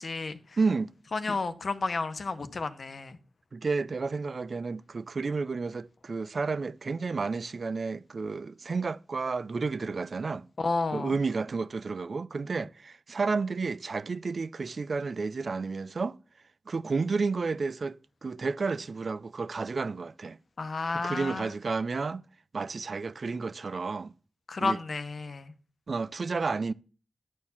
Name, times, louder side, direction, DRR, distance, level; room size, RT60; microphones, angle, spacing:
voice 1, 0.0-0.6 1.1-3.2 10.6-11.1 20.6-21.5 24.5-25.5, left 3 dB, 60° left, 1.0 m, -31 dB
voice 2, 0.6-0.9 1.3-1.4 3.5-10.5 10.9-16.2 16.7-18.0 18.2-20.4 20.9-22.2 22.5-24.1 24.6-24.8 25.9-26.7, right 4 dB, 60° right, 0.5 m, -31 dB
10.5 x 4.6 x 7.1 m
wide cardioid pair, 80°, 0 cm